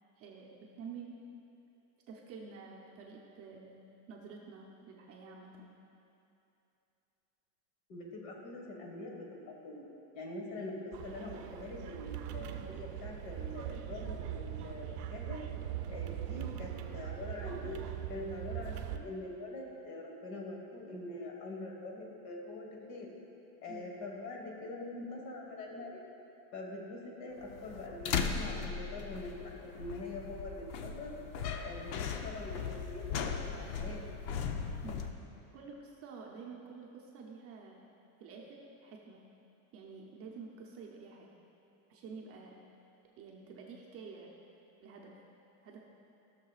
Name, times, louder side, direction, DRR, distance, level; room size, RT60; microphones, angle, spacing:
voice 1, 0.2-1.1 2.1-3.8 4.1-5.7 23.7-24.1 34.8-35.2 35.5-37.8 38.2-39.2 39.7-41.3 41.9-42.6 43.2-44.3 44.8-45.2 45.6-45.8, right 5 dB, 30° right, -1 dB, 0.7 m, -49 dB
voice 2, 7.9-9.8 10.1-15.4 15.9-17.8 18.1-23.1 23.6-26.0 26.5-31.2 31.6-34.0, left 2 dB, 50° left, 0 dB, 1.5 m, -44 dB
sound 1, 10.9-19.0, right 11 dB, 80° right, 0.7 m, -41 dB
sound 2, 27.4-35.1, left 6 dB, 75° left, 0.8 m, -38 dB
16.0 x 6.6 x 2.4 m, 2.8 s
cardioid pair, 170°, 46 cm